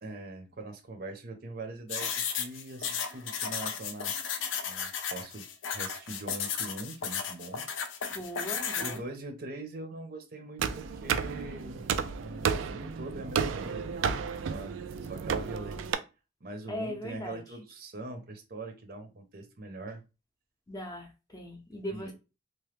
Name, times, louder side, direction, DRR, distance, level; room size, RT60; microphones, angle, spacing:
voice 1, 0.0-4.1 4.6-5.5 5.7-7.6 8.8-11.8 12.2-14.1 14.5-14.8 15.1-16.0 16.4-20.0 21.9-22.1, right 2 dB, 50° right, 5 dB, 0.7 m, -42 dB
sound 1, 1.9-9.0, left 7 dB, 85° left, 0.5 m, -34 dB
voice 2, 8.1-9.0 16.7-17.4 20.7-22.1, equal, 20° left, 2 dB, 0.6 m, -39 dB
sound 2, 10.6-15.9, right 6 dB, 85° right, 0.3 m, -32 dB
3.0 x 2.1 x 3.2 m, 0.29 s
head